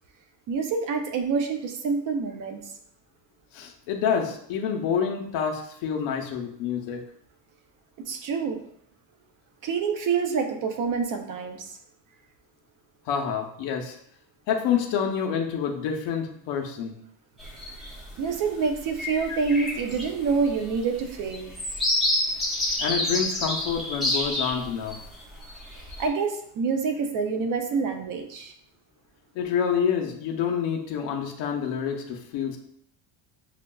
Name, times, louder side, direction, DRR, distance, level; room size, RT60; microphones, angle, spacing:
voice 1, 0.5-2.6 8.1-8.6 9.6-11.7 18.2-21.6 26.0-28.5, right 5 dB, 45° right, 5 dB, 0.5 m, -27 dB
voice 2, 3.5-7.0 13.1-14.0 14.5-16.9 22.8-25.0 29.3-32.6, left 7 dB, 65° left, 1 dB, 0.7 m, -27 dB
sound 1, 17.4-18.0 18.5-18.6 18.9-25.0 25.4-26.1, left 1 dB, ahead, 0.6 m, -28 dB
6.5 x 2.3 x 2.2 m, 0.69 s
cardioid pair, 175°, 46 cm